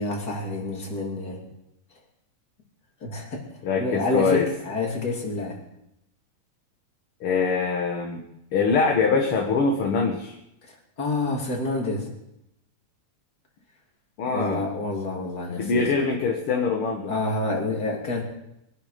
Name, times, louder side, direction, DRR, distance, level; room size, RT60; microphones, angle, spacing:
voice 1, 0.0-1.4 3.0-3.4 3.8-5.6 10.7-12.1 14.3-15.9 17.1-18.2, left 2 dB, 30° left, -1 dB, 3.5 m, -28 dB
voice 2, 3.6-4.5 7.2-8.2 8.5-10.3 14.2-14.6 15.6-17.1, left 4 dB, 55° left, 1 dB, 2.1 m, -23 dB
23.0 x 12.0 x 5.1 m, 0.83 s
omnidirectional pair, 3.3 m